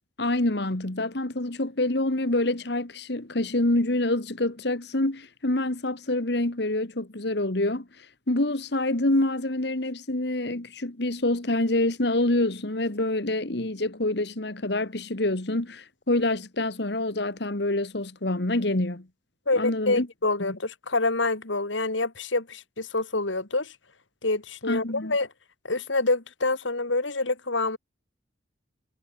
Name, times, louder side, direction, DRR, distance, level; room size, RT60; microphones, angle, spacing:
voice 1, 0.2-19.1 19.6-20.1 20.4-20.6 24.7-25.1, left 1 dB, 60° left, 1.8 m, -26 dB
voice 2, 19.5-23.7 24.2-25.3 25.7-27.8, left 2 dB, 80° left, 2.9 m, -26 dB
head